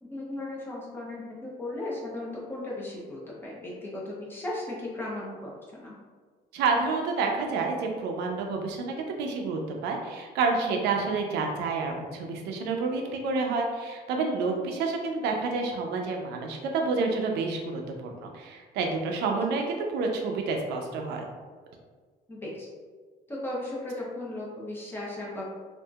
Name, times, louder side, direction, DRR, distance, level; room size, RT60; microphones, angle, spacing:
voice 1, 0.0-6.0 19.3-19.5 22.3-22.7 23.3-25.5, left 2 dB, 15° left, -5 dB, 0.8 m, -36 dB
voice 2, 6.5-21.2, right 4 dB, 85° right, 2 dB, 0.5 m, -29 dB
2.7 x 2.5 x 2.3 m, 1.5 s
cardioid pair, 110°, 17 cm